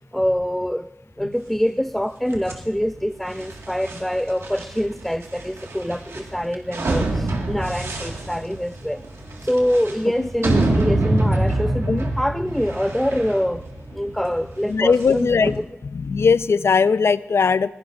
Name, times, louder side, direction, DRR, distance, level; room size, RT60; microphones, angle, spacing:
voice 1, 0.1-0.9 1.2-9.0 9.4-13.7 13.9-15.6, equal, 5° left, 0.4 m, -25 dB
sound 1, 2.3-15.6, right 2 dB, 85° right, 1.9 m, -26 dB
voice 2, 14.7-15.5 15.9-17.7, left 5 dB, 70° left, 0.4 m, -19 dB
21.5 x 16.0 x 2.6 m
cardioid pair, 50°, 5 cm